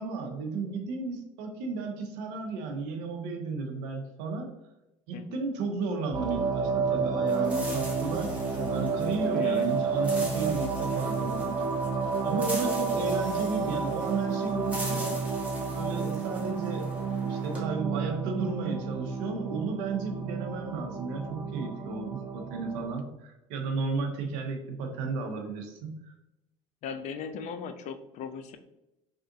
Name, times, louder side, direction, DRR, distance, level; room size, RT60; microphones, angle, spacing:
voice 1, 0.0-4.5 5.1-11.6 12.2-15.2 15.7-26.1, right 4 dB, 65° right, 3 dB, 0.7 m, -34 dB
sound 1, 6.1-22.9, right 5 dB, 25° right, 0.5 m, -30 dB
sound 2, 7.3-17.6, equal, 10° right, 1.2 m, -42 dB
voice 2, 9.3-9.8 26.8-28.6, left 6 dB, 45° left, 9 dB, 0.4 m, -38 dB
3.6 x 2.4 x 2.6 m, 0.92 s
hypercardioid pair, 70°, 17 cm